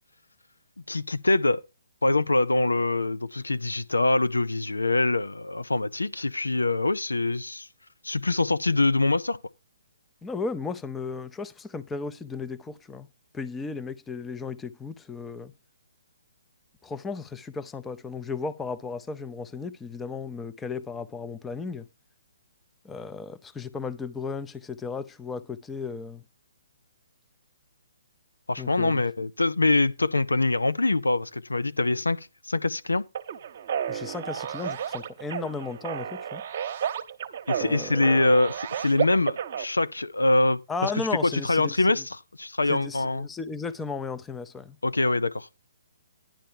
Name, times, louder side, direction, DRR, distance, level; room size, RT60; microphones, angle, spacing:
voice 1, 0.9-1.6 2.0-7.7 8.0-9.4 28.5-33.1 37.5-43.3 44.8-45.5, left 2 dB, 90° left, 0.6 m, -24 dB
voice 2, 10.2-13.1 13.3-15.5 16.8-21.9 22.8-26.2 28.6-29.0 33.9-36.4 37.6-38.3 40.7-42.0 42.7-44.8, left 4 dB, 10° left, 0.5 m, -35 dB
sound 1, 33.1-39.6, right 9 dB, 45° right, 0.9 m, -32 dB
10.5 x 4.4 x 6.6 m
figure-of-eight pair, 140°, 0 cm